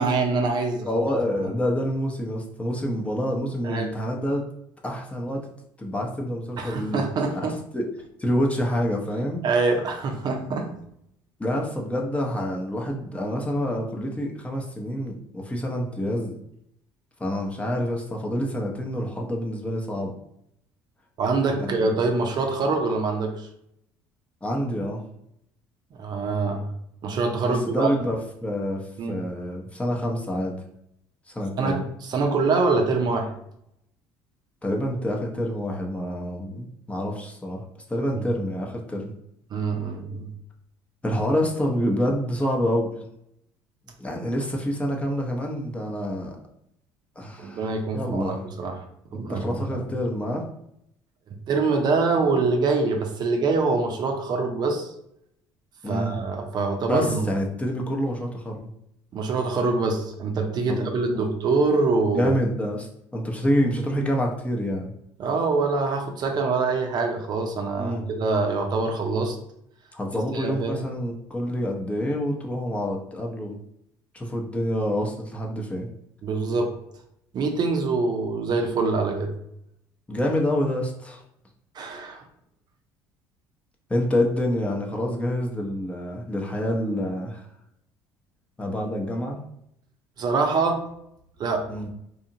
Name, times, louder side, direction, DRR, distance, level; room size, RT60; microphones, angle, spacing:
voice 1, 0.0-0.9 1.4-1.5 3.6-3.9 6.6-7.6 9.4-10.7 21.2-23.5 26.0-26.7 27.0-27.9 29.0-29.2 31.6-33.3 38.1-38.3 39.5-40.3 47.4-48.8 49.1-49.6 51.5-54.9 55.9-57.4 59.1-62.3 65.2-69.4 70.3-70.8 76.2-76.7 77.3-79.3 81.7-82.2 90.2-90.9 91.4-91.7, right 3 dB, 50° right, 4 dB, 0.5 m, -24 dB
voice 2, 0.8-4.4 4.8-5.5 5.8-7.0 7.3-7.5 7.7-7.9 8.2-9.4 11.4-16.3 17.2-20.1 21.6-22.0 24.4-25.0 27.5-30.6 31.3-31.9 34.6-37.6 37.9-39.1 41.0-42.9 44.0-46.4 47.2-48.5 49.1-50.5 55.8-56.2 56.8-58.7 60.7-61.4 62.1-64.9 67.8-68.1 69.9-73.6 74.1-75.9 80.1-81.2 83.9-87.5 88.6-89.4 91.7-91.9, equal, 15° left, 0 dB, 0.7 m, -27 dB
2.8 x 2.4 x 2.7 m, 0.75 s
supercardioid pair, 75°, 9 cm